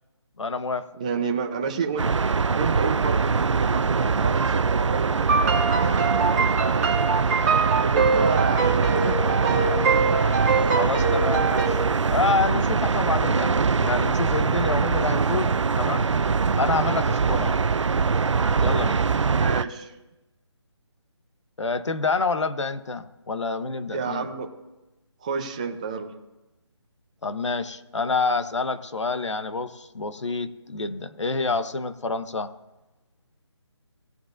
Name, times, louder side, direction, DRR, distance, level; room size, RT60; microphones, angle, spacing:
voice 1, 0.4-0.9 10.8-11.8 12.1-16.1 16.5-17.6 18.6-19.1 21.6-24.3 27.2-32.5, left 4 dB, 80° left, 11 dB, 1.1 m, -28 dB
voice 2, 0.9-2.1 2.5-7.4 7.8-9.8 19.2-19.9 23.9-24.5 25.2-26.1, right 5 dB, 15° right, 3 dB, 0.7 m, -30 dB
sound 1, 2.0-19.6, right 5 dB, 85° right, 0.6 m, -23 dB
sound 2, 5.2-11.7, right 4 dB, 35° right, 1.7 m, -24 dB
18.5 x 7.5 x 2.6 m, 1.0 s
hypercardioid pair, 170°, 15 cm